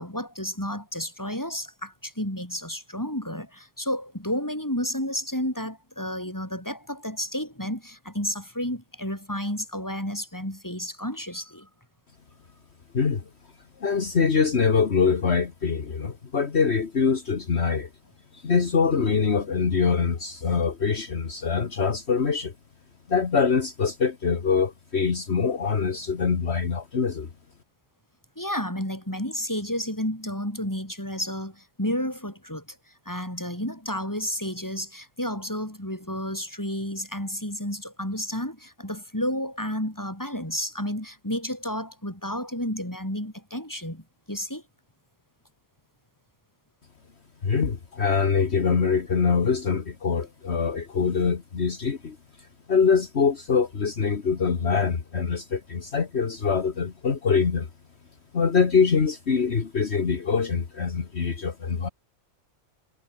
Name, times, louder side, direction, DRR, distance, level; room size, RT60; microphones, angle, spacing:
voice 1, 0.0-11.7 28.4-32.8 33.0-44.6, equal, 15° left, 6.7 m, -31 dB
voice 2, 13.8-17.9 18.3-22.5 23.1-27.3 47.4-52.2 52.7-57.7 58.3-61.9, left 5 dB, 55° left, 1.8 m, -24 dB
omnidirectional pair, 1.3 m